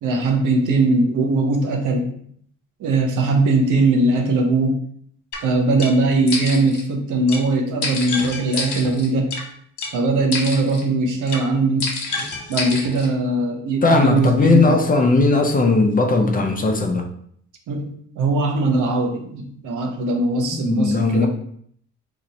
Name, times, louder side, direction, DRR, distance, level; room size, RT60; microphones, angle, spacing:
voice 1, 0.0-2.1 2.8-4.8 5.4-9.3 9.9-11.9 12.5-14.8 17.7-17.9 18.2-21.3, right 2 dB, 80° right, 0.8 m, -20 dB
sound 1, 5.3-5.4 5.8-5.9 6.3-6.8 7.3-7.4 7.8-9.4 9.8-9.9 10.3-10.8 11.3-11.4 11.8-13.1, left 3 dB, 75° left, 1.1 m, -28 dB
voice 2, 13.8-17.1 20.5-21.3, left 3 dB, 30° left, 0.6 m, -17 dB
2.9 x 2.5 x 4.1 m
cardioid pair, 90°, 30 cm